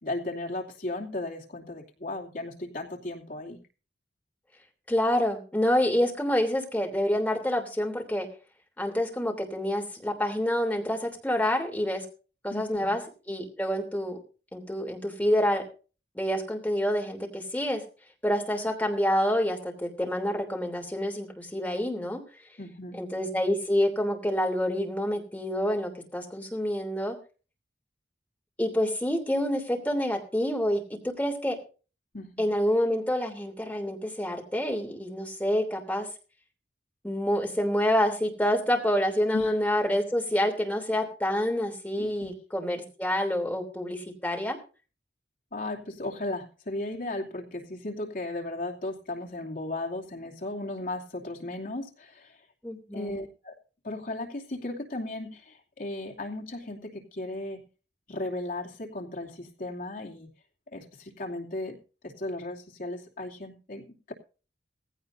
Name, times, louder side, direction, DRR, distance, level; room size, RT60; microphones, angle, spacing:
voice 1, 0.0-3.6 12.5-13.0 22.6-23.0 32.1-32.5 39.3-39.5 42.0-42.3 45.5-52.4 52.9-53.5 53.8-57.6 58.1-60.3 60.7-61.8 62.0-64.1, left 2 dB, 55° left, 0 dB, 2.7 m, -36 dB
voice 2, 4.9-8.3 8.8-12.0 12.4-13.0 13.3-14.2 14.5-15.6 16.1-17.8 18.2-22.2 22.9-27.1 28.6-31.6 32.4-36.1 37.0-44.6 52.6-53.2, equal, 10° left, 1 dB, 3.1 m, -27 dB
18.0 x 16.0 x 2.7 m, 0.36 s
head